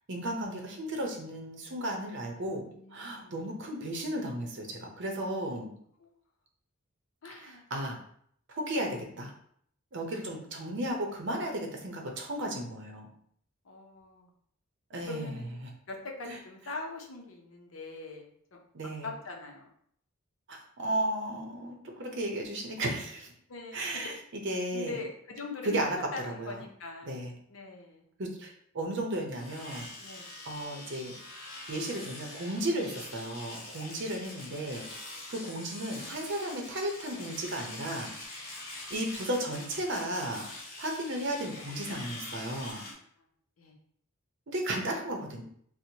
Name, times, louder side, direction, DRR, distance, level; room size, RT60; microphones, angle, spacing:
voice 1, 0.1-5.7 7.3-8.0 8.5-9.3 9.9-13.1 14.9-15.7 16.3-16.4 18.7-19.1 20.5-23.3 23.7-25.0 25.6-26.0 26.2-26.6 27.1-27.3 28.2-29.9 30.1-31.1 31.7-34.9 35.3-38.1 38.9-40.5 40.8-42.8 44.5-45.4, right 1 dB, 60° right, 2 dB, 0.7 m, -34 dB
voice 2, 2.6-3.4 6.0-6.1 7.2-7.6 13.6-14.3 15.1-15.6 15.9-18.6 19.0-19.7 20.8-21.0 23.5-24.1 24.7-27.2 27.5-28.0 30.0-30.3 33.9-34.1 42.7-42.9 43.6-43.7, left 3 dB, 70° left, 2 dB, 0.7 m, -42 dB
Domestic sounds home sounds, 29.3-42.9, left 2 dB, 45° left, 1.1 m, -44 dB
4.3 x 2.1 x 2.8 m, 0.66 s
head